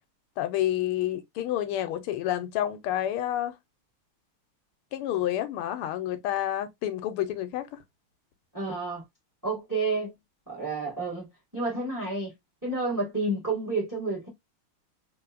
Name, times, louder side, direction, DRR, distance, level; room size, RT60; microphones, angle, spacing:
voice 1, 0.4-3.5 4.9-7.8, left 12 dB, 90° left, 1.6 m, -29 dB
voice 2, 8.5-9.0 9.4-10.1 10.5-11.3 11.5-12.3 12.6-14.3, right 3 dB, 10° right, 1.4 m, -30 dB
3.4 x 3.3 x 2.4 m
omnidirectional pair, 2.4 m